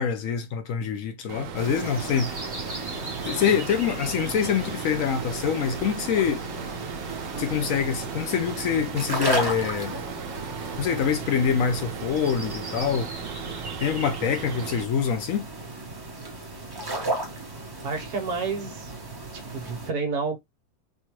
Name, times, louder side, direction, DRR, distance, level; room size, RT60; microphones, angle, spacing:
voice 1, 0.0-2.4 3.2-6.4 7.4-10.0 10.8-13.1 13.8-15.5, left 7 dB, 70° left, 0.8 m, -25 dB
sound 1, 1.3-14.8, right 7 dB, 85° right, 1.3 m, -37 dB
sound 2, 1.5-19.9, right 2 dB, 25° right, 0.5 m, -35 dB
voice 2, 17.8-18.9 19.5-20.4, right 4 dB, 65° right, 1.4 m, -29 dB
4.3 x 2.2 x 3.0 m
omnidirectional pair, 1.9 m